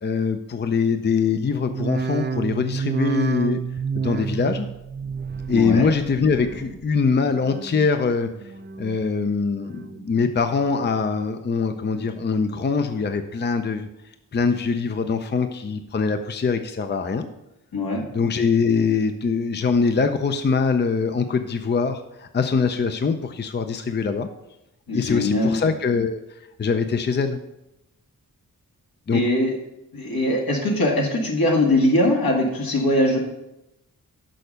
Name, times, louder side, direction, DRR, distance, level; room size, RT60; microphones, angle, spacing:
voice 1, 0.0-3.6 3.9-4.7 5.5-8.3 8.8-13.9 14.3-17.3 18.1-24.3 24.9-26.2 26.6-27.4 29.1-29.2, left 5 dB, 30° left, 8 dB, 0.5 m, -23 dB
sound 1, 1.6-7.0 7.3-7.9 8.4-9.0 9.5-10.1 10.5-11.2 11.7-12.2 12.8-12.9, right 6 dB, 30° right, 0.5 m, -30 dB
voice 2, 5.5-5.9 17.7-18.0 24.9-25.6 29.1-29.5 29.9-33.2, left 1 dB, 75° left, -1 dB, 2.1 m, -21 dB
6.4 x 5.6 x 6.6 m, 0.89 s
cardioid pair, 75°, 36 cm